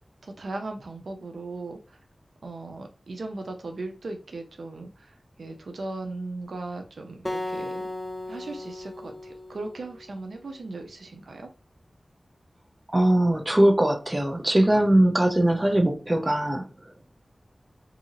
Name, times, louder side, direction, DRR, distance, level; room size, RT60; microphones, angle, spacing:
voice 1, 0.2-2.0 2.4-7.9 8.3-11.5, right 2 dB, 90° right, 4 dB, 0.4 m, -38 dB
Acoustic guitar, 7.3-10.5, left 1 dB, 20° left, 0.3 m, -36 dB
voice 2, 12.9-16.6, right 1 dB, 30° right, 3 dB, 0.6 m, -21 dB
2.7 x 2.7 x 2.6 m, 0.36 s
cardioid pair, 45°, 0 cm